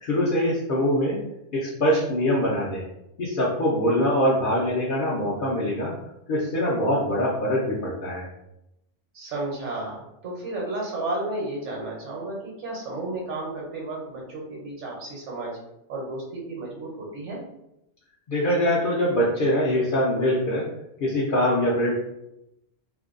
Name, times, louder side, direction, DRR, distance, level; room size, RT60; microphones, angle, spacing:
voice 1, 0.0-1.2 1.5-2.8 3.2-5.9 6.3-8.3 18.3-20.7 21.0-21.9, equal, 60° left, -5 dB, 0.5 m, -23 dB
voice 2, 9.1-15.6 15.9-17.4, right 2 dB, 70° right, -2 dB, 1.1 m, -32 dB
2.6 x 2.1 x 2.4 m, 0.85 s
omnidirectional pair, 1.3 m